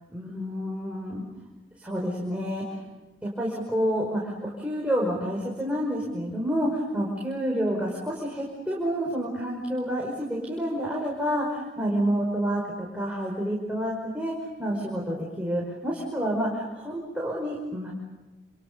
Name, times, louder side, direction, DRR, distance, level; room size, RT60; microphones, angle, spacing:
voice 1, 0.1-1.2 1.8-2.6 3.2-17.9, equal, 5° right, -3 dB, 5.1 m, -29 dB
29.0 x 28.0 x 6.9 m, 1.2 s
head